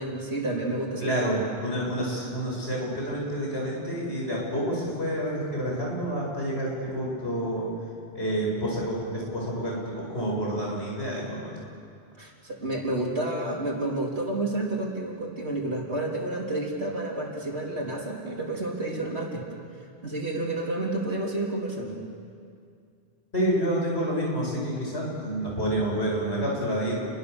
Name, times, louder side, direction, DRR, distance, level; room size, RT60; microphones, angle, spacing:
voice 1, 0.0-1.3 12.2-19.5 20.0-22.0, right 2 dB, 85° right, -1 dB, 3.8 m, -30 dB
voice 2, 1.0-7.7 8.1-11.6 23.3-27.0, right 1 dB, 80° left, -3 dB, 7.8 m, -28 dB
30.0 x 23.0 x 7.0 m, 2.3 s
omnidirectional pair, 1.1 m